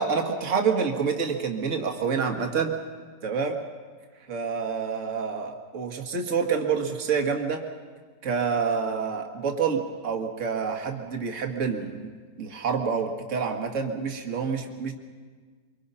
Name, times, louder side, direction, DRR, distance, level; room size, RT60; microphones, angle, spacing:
voice 1, 0.0-2.7 3.2-3.6 4.3-7.6 8.2-12.1 12.4-14.9, right 5 dB, 45° right, 3 dB, 2.0 m, -27 dB
24.5 x 24.0 x 5.6 m, 1.5 s
omnidirectional pair, 1.9 m